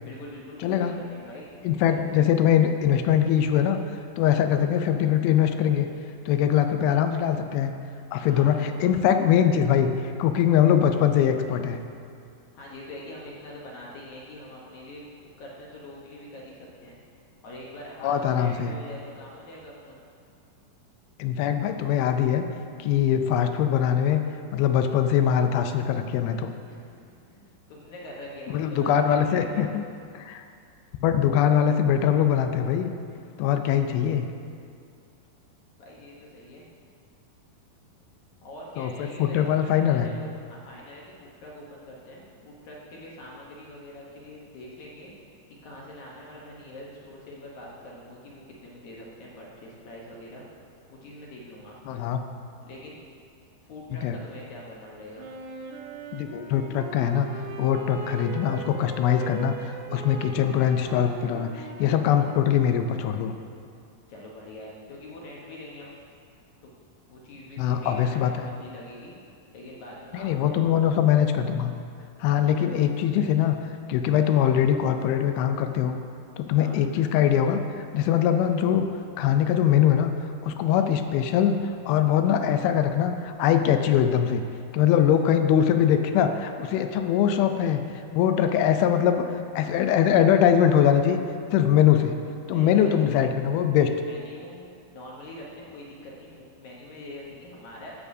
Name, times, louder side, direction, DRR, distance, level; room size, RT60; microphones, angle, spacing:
voice 1, 0.0-1.5 1.9-2.3 8.3-8.6 12.5-15.0 15.4-17.0 17.4-20.0 26.7-29.8 35.8-36.6 38.4-45.1 45.6-50.5 50.9-51.8 52.6-53.0 53.7-55.3 64.1-65.9 66.6-66.7 67.1-69.2 69.5-70.9 72.2-72.8 76.6-76.8 92.5-93.1 93.7-97.9, left 1 dB, 65° left, -4 dB, 2.0 m, -44 dB
voice 2, 0.6-1.0 1.6-3.8 4.2-5.9 6.3-7.7 8.1-11.8 18.0-18.7 21.2-22.5 22.8-24.2 24.5-26.5 28.5-29.8 30.3-30.4 31.0-32.9 33.4-34.3 38.8-40.1 51.9-52.2 54.0-54.2 56.1-57.3 57.6-59.5 59.9-63.3 67.6-68.5 70.1-71.7 72.2-73.6 73.9-76.0 76.4-77.6 77.9-78.9 79.2-80.1 80.4-84.4 84.7-87.8 88.1-89.3 89.6-91.2 91.5-92.2 92.5-93.9, left 9 dB, 90° left, 7 dB, 2.4 m, -22 dB
Wind instrument woodwind instrument, 55.2-63.2, right 5 dB, 75° right, 1.9 m, -40 dB
15.5 x 6.8 x 2.7 m, 2.3 s
omnidirectional pair, 4.3 m